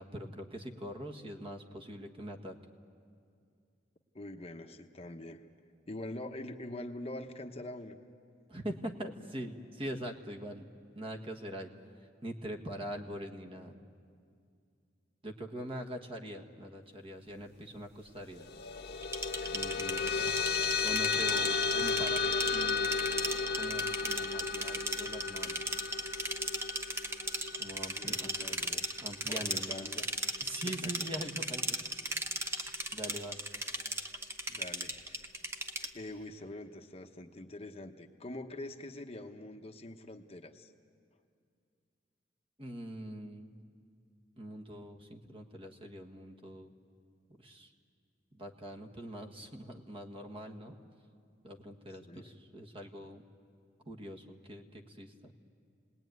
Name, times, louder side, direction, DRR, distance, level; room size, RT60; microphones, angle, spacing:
voice 1, 0.0-2.6 8.5-10.6 10.9-11.7 12.2-13.8 15.2-18.5 19.5-20.3 20.8-22.9 23.5-25.7 27.6-28.5 29.0-29.8 30.4-31.8 32.9-33.5 42.6-43.5 44.4-46.7 47.4-47.7 48.3-50.7 51.4-53.2 53.9-55.3, equal, 30° right, 2 dB, 1.6 m, -43 dB
voice 2, 4.1-5.4 5.9-8.0 28.0-28.9 29.3-30.1 30.7-30.9 34.5-35.3 35.9-40.7 52.0-52.3, left 1 dB, 35° left, 5 dB, 1.0 m, -44 dB
sound 1, 18.3-29.1, left 5 dB, 60° left, 1.2 m, -34 dB
sound 2, 19.0-35.9, right 1 dB, 15° right, 1.0 m, -37 dB
29.0 x 20.0 x 9.4 m, 2.4 s
head